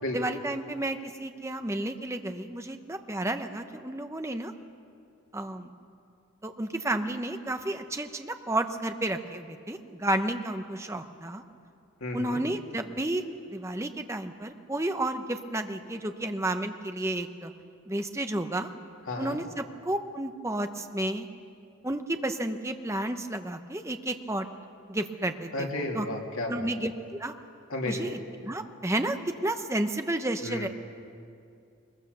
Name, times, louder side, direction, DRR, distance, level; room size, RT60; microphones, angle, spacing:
voice 1, 0.1-4.5 5.3-5.7 6.4-11.4 12.1-13.2 13.5-17.5 17.9-18.7 19.2-21.3 21.8-24.5 24.9-26.1 26.5-27.3 27.8-29.2 29.4-30.7, right 1 dB, 15° right, 7 dB, 0.9 m, -31 dB
voice 2, 12.0-12.4 19.1-19.4 25.5-26.7 27.7-28.1 30.4-30.7, left 1 dB, 85° left, 0 dB, 2.9 m, -33 dB
22.0 x 21.5 x 6.8 m, 2.5 s
head